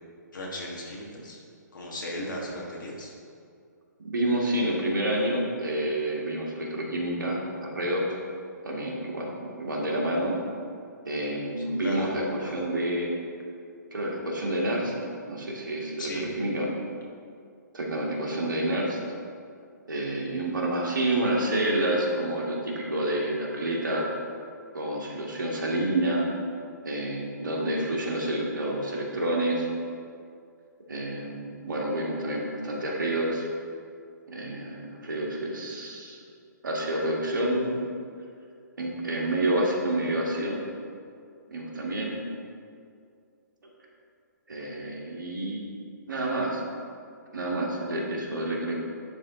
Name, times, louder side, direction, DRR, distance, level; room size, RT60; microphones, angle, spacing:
voice 1, 0.3-1.4 1.7-3.1 11.8-12.1 12.4-12.6 16.0-16.2, left 1 dB, 85° left, -3 dB, 1.5 m, -36 dB
voice 2, 4.1-8.0 8.6-10.4 11.1-13.1 13.9-14.9 15.3-16.1 16.4-16.7 17.7-19.0 19.9-24.1 24.7-26.2 26.8-29.7 30.9-33.5 34.3-36.2 36.6-37.7 38.8-40.6 41.5-42.2 44.5-45.7 46.1-46.6 47.3-48.8, right 1 dB, 80° right, -2 dB, 1.8 m, -28 dB
10.5 x 3.7 x 3.8 m, 2.3 s
hypercardioid pair, 135°, 10 cm